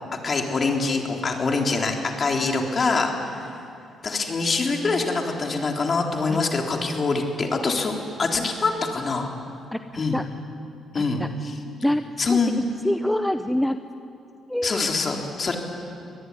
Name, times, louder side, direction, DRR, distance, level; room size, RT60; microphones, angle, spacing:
voice 1, 0.2-3.1 4.0-9.3 10.0-10.2 10.9-11.2 12.2-12.5 14.6-15.6, left 4 dB, 40° left, 2 dB, 3.8 m, -24 dB
voice 2, 9.7-10.2 10.9-11.3 11.8-12.4 12.8-13.8 14.5-14.9, left 1 dB, 5° left, 8 dB, 0.9 m, -26 dB
24.5 x 19.0 x 9.7 m, 2.5 s
cardioid pair, 90°, 0 cm